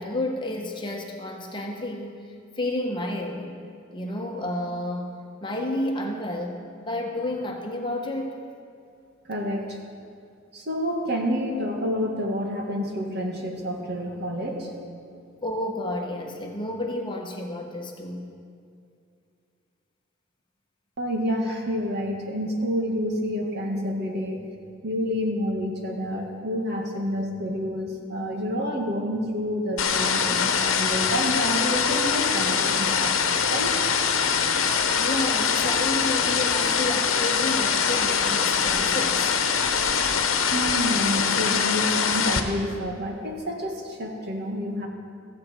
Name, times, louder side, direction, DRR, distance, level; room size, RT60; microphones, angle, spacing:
voice 1, 0.0-3.5 3.9-5.1 5.4-8.4 15.4-18.3 35.0-39.3, left 1 dB, 25° left, 1 dB, 1.3 m, -31 dB
voice 2, 9.2-9.8 10.5-14.7 21.0-24.4 24.8-33.8 40.5-44.9, equal, 55° right, 1 dB, 1.9 m, -29 dB
sound 1, 29.8-42.4, left 6 dB, 80° left, 1.1 m, -23 dB
15.5 x 14.5 x 4.5 m, 2.4 s
head